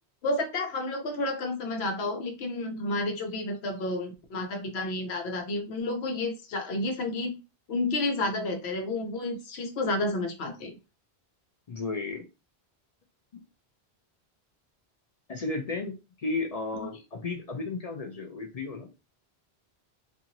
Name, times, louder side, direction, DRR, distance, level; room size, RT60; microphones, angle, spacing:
voice 1, 0.2-7.4 7.7-10.8, left 2 dB, 85° left, 4 dB, 1.0 m, -31 dB
voice 2, 11.7-12.2 13.3-13.4 15.3-18.9, left 3 dB, 50° left, 3 dB, 0.5 m, -34 dB
2.8 x 2.5 x 2.6 m, 0.29 s
omnidirectional pair, 1.1 m